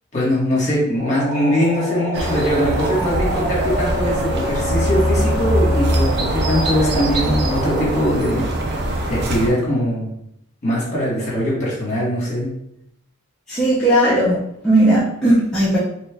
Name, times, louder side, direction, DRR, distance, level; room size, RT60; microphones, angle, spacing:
voice 1, 0.1-8.5 9.1-10.1 10.6-12.5, equal, 35° left, -5 dB, 1.2 m, -21 dB
sound 1, 1.0-8.0, left 1 dB, 30° right, 1.2 m, -28 dB
sound 2, 2.1-9.5, right 1 dB, 50° right, 0.5 m, -22 dB
voice 2, 13.5-15.8, right 1 dB, ahead, -10 dB, 0.6 m, -17 dB
3.0 x 2.4 x 3.4 m, 0.76 s
head